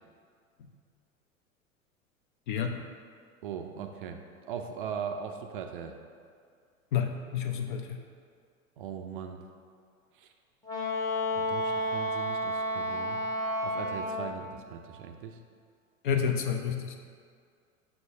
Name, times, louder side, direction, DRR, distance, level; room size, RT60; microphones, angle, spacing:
voice 1, 2.5-2.8 6.9-8.0 16.0-17.0, left 7 dB, 40° left, 5 dB, 0.4 m, -30 dB
voice 2, 3.4-4.2 4.5-5.9 8.8-9.4 10.2-10.3 11.3-13.2 13.6-15.4 16.1-16.3, right 7 dB, 40° right, 5 dB, 0.4 m, -39 dB
Wind instrument woodwind instrument, 10.7-14.4, equal, 10° left, 0.8 m, -31 dB
7.6 x 5.7 x 2.7 m, 2.2 s
figure-of-eight pair, 90°, 42 cm